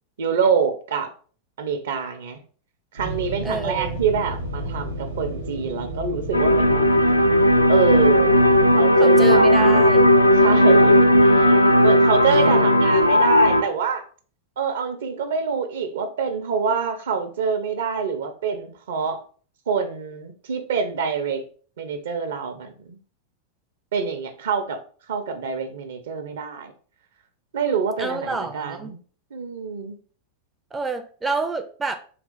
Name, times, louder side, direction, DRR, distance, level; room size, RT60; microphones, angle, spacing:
voice 1, 0.2-1.1 1.6-2.4 2.9-6.9 7.7-8.4 8.7-9.9 10.4-14.1 14.6-19.2 19.7-21.4 21.8-23.0 23.9-24.8 25.1-26.7 27.5-29.0 29.3-30.0, right 6 dB, 60° right, 8 dB, 0.6 m, -26 dB
sound 1, 3.0-8.8, right 1 dB, 85° right, 0.8 m, -32 dB
voice 2, 3.4-4.0 9.0-10.1 12.2-12.6 28.0-28.9 30.7-32.0, right 3 dB, 15° right, 7 dB, 0.4 m, -28 dB
sound 2, 6.3-13.6, equal, 85° left, 0.3 m, -15 dB
4.2 x 2.4 x 3.8 m, 0.42 s
figure-of-eight pair, 90°, 0 cm